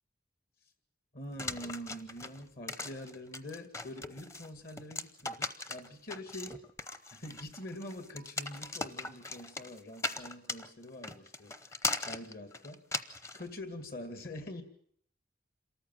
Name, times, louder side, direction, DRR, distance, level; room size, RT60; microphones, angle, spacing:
voice 1, 1.1-6.6 7.1-11.6 12.1-12.8 13.3-14.6, left 1 dB, 55° left, 7 dB, 2.2 m, -45 dB
sound 1, 1.4-13.4, left 3 dB, 15° left, 0.8 m, -39 dB
27.0 x 14.0 x 7.4 m, 0.65 s
head